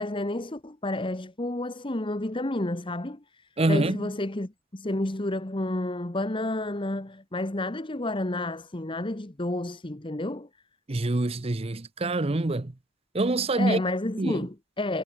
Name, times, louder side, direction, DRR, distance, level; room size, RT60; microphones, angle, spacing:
voice 1, 0.0-10.5 13.6-15.0, left 1 dB, 25° left, 1.2 m, -30 dB
voice 2, 3.6-4.0 10.9-12.7 13.1-13.8 14.2-14.4, right 2 dB, 30° right, 0.7 m, -25 dB
head